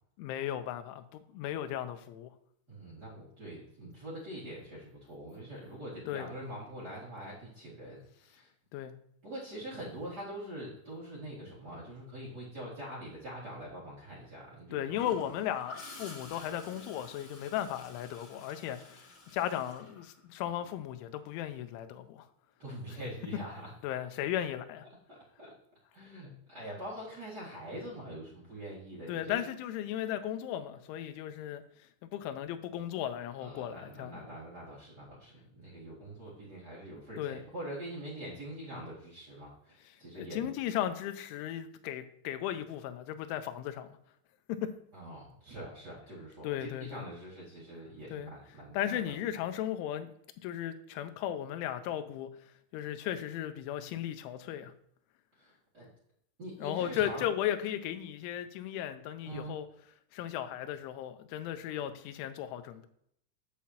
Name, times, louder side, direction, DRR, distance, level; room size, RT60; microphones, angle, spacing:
voice 1, 0.2-2.3 6.1-6.3 8.7-8.9 14.7-22.3 23.8-24.9 29.1-31.6 32.1-34.2 37.2-37.4 40.1-43.9 44.5-44.7 46.4-47.1 48.1-48.3 48.7-50.1 50.4-52.4 52.7-54.7 56.6-59.7 60.1-62.9, left 11 dB, 85° left, 10 dB, 3.0 m, -36 dB
voice 2, 2.7-8.5 9.2-15.0 22.6-23.7 25.1-25.5 25.9-29.4 33.4-40.5 44.9-49.2 55.4-55.9 56.4-57.2 59.2-59.6, right 1 dB, 70° right, -8 dB, 0.9 m, -44 dB
Gurgling / Toilet flush, 15.0-20.7 22.7-22.9, left 3 dB, 50° left, 1.4 m, -50 dB
8.4 x 7.7 x 2.8 m, 0.70 s
omnidirectional pair, 5.6 m